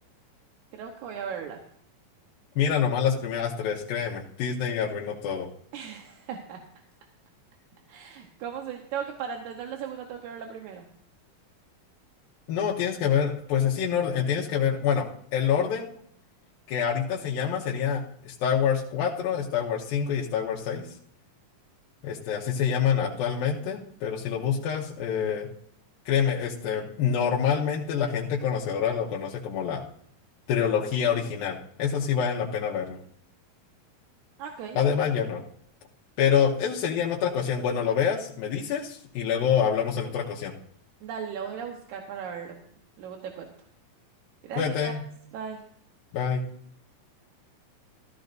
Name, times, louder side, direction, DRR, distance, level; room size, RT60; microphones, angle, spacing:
voice 1, 0.7-1.6 5.7-6.6 7.9-10.9 34.4-34.8 41.0-42.6 43.0-43.5 44.4-44.9 45.3-45.6, right 7 dB, 70° right, 2 dB, 2.2 m, -37 dB
voice 2, 2.6-5.5 12.5-15.9 16.7-20.9 22.0-25.5 26.1-29.8 30.5-33.0 34.8-35.4 36.2-40.5 44.6-45.0 46.1-46.4, left 7 dB, 85° left, -3 dB, 2.8 m, -26 dB
14.5 x 14.5 x 2.6 m, 0.67 s
omnidirectional pair, 4.1 m